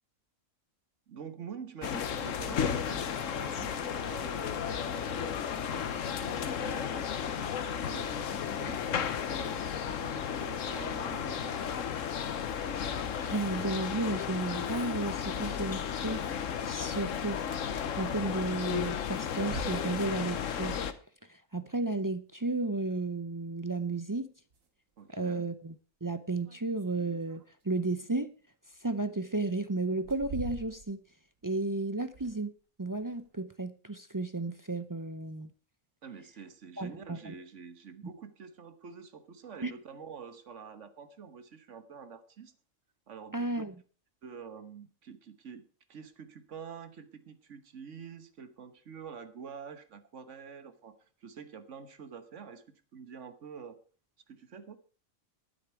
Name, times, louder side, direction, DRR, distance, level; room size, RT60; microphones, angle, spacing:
voice 1, 1.1-11.7 25.0-25.5 36.0-42.5 43.1-43.7 44.2-53.8 54.3-54.8, right 6 dB, 65° right, 11 dB, 1.5 m, -47 dB
sound 1, 1.8-20.9, left 8 dB, 75° left, 1.3 m, -34 dB
voice 2, 13.3-16.3 16.6-17.4 18.0-20.8 21.3-24.3 25.1-25.7 26.0-28.3 28.8-31.0 31.4-32.5 32.8-35.5 36.8-37.4 39.6-39.7 43.3-43.7, right 2 dB, 35° right, 11 dB, 0.3 m, -33 dB
sound 2, 17.5-17.8 18.2-18.3 19.5-20.2 22.9-23.0 24.1-24.2 24.5-24.7 25.2-25.3 26.4-27.8 28.9-29.0 29.8-31.1 31.4-31.5 32.1-32.6 32.9-33.3, right 3 dB, 90° right, 2.3 m, -44 dB
12.0 x 10.0 x 4.6 m, 0.39 s
omnidirectional pair, 1.3 m